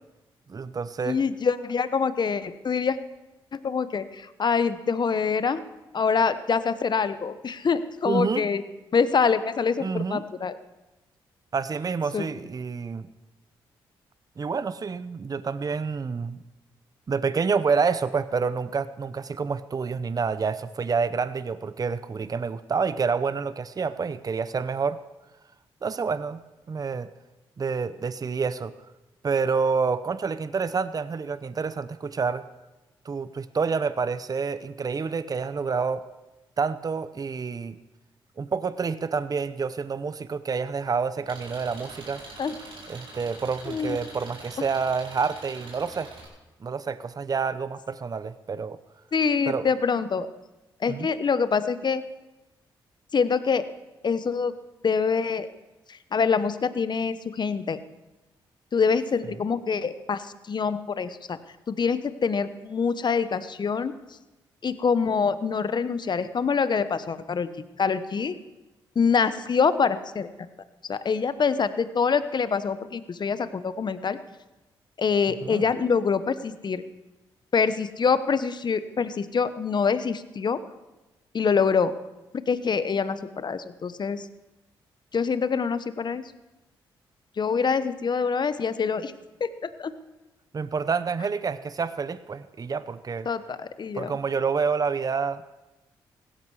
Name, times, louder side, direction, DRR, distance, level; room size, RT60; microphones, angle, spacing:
voice 1, 0.5-1.2 8.1-8.4 9.8-10.2 11.5-13.1 14.4-16.4 17.1-25.0 25.8-26.4 26.7-27.1 27.6-28.7 29.2-32.4 33.0-36.0 36.6-37.8 38.4-42.2 42.9-46.1 46.6-48.8 49.5-49.7 50.9-51.1 75.4-75.6 90.5-93.3 93.9-95.4, right 5 dB, 40° right, 14 dB, 0.7 m, -28 dB
voice 2, 1.1-3.0 3.5-5.6 5.9-8.6 8.9-10.6 12.1-12.3 42.4-42.6 43.7-44.0 49.1-50.3 50.8-52.0 53.1-53.6 54.0-54.5 54.8-55.5 55.9-57.8 58.7-61.4 61.7-63.9 64.6-67.5 67.8-68.3 68.9-70.3 70.8-74.2 75.0-76.8 77.5-80.6 81.3-81.9 82.3-84.3 85.1-86.2 87.4-89.1 89.4-89.9 93.2-94.1, left 5 dB, 50° left, 13 dB, 1.0 m, -25 dB
Engine, 41.3-46.3, right 2 dB, 65° right, 4.9 m, -44 dB
16.5 x 12.5 x 4.8 m, 1.1 s
supercardioid pair, 55°, 10 cm